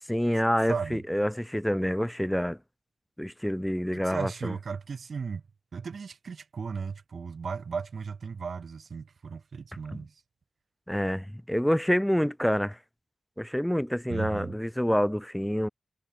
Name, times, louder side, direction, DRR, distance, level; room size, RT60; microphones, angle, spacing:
voice 1, 0.1-2.6 3.2-4.5 9.9-10.0 10.9-12.8 13.4-15.7, equal, ahead, 0.6 m, -27 dB
voice 2, 0.7-1.0 3.9-5.4 5.7-10.1 14.1-14.5, right 5 dB, 55° right, 1.9 m, -35 dB
wide cardioid pair, 180°, 0 cm